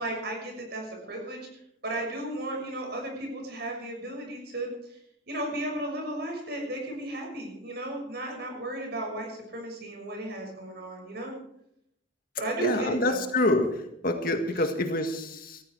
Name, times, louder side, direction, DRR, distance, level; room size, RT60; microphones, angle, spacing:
voice 1, 0.0-1.4 1.8-4.7 5.3-11.3 12.4-13.2, right 1 dB, 60° right, 1 dB, 6.4 m, -34 dB
voice 2, 12.6-15.6, left 1 dB, 50° left, 5 dB, 1.9 m, -27 dB
18.0 x 14.5 x 4.8 m, 0.75 s
head